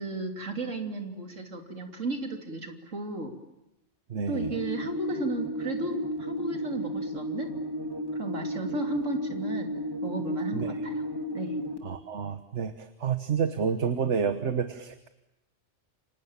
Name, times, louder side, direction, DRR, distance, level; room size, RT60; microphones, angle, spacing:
voice 1, 0.0-3.3 4.3-7.5 8.1-9.7 10.0-11.1 11.3-11.7, right 2 dB, 85° right, 4 dB, 3.5 m, -34 dB
voice 2, 4.1-4.5 10.5-10.7 11.8-15.1, right 6 dB, 70° right, 10 dB, 1.5 m, -29 dB
sound 1, 4.3-11.8, equal, 20° right, 2.6 m, -33 dB
29.5 x 25.5 x 7.4 m, 0.95 s
omnidirectional pair, 1.3 m